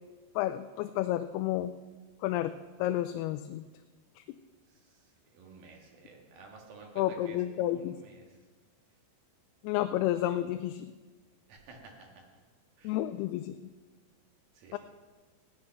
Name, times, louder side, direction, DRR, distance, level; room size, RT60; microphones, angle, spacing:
voice 1, 0.4-1.7 2.2-2.5 2.8-3.6 4.2-4.3 7.0-8.0 9.6-10.9 12.8-13.6 14.7-14.8, left 13 dB, 85° left, 9 dB, 2.5 m, -31 dB
voice 2, 5.3-8.4 11.5-12.2 12.8-13.0 14.5-14.8, right 3 dB, 65° right, 1 dB, 3.5 m, -52 dB
16.5 x 9.8 x 5.9 m, 1.3 s
omnidirectional pair, 4.7 m